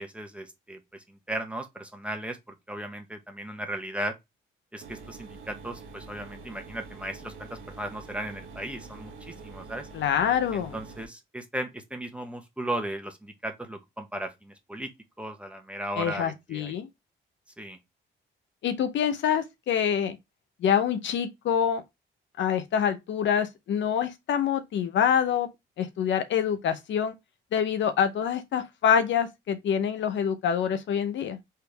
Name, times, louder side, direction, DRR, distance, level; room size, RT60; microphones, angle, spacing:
voice 1, 0.0-4.2 4.7-9.9 10.5-14.9 15.2-16.8 17.6-17.8, right 1 dB, 5° right, 1.2 m, -36 dB
sound 1, 4.8-11.0, right 4 dB, 85° right, 1.2 m, -45 dB
voice 2, 9.9-10.8 16.0-16.9 18.6-20.2 20.6-21.8 22.4-25.5 25.8-27.1 27.5-31.4, left 8 dB, 70° left, 0.8 m, -26 dB
4.5 x 3.5 x 3.3 m
cardioid pair, 90°, 20 cm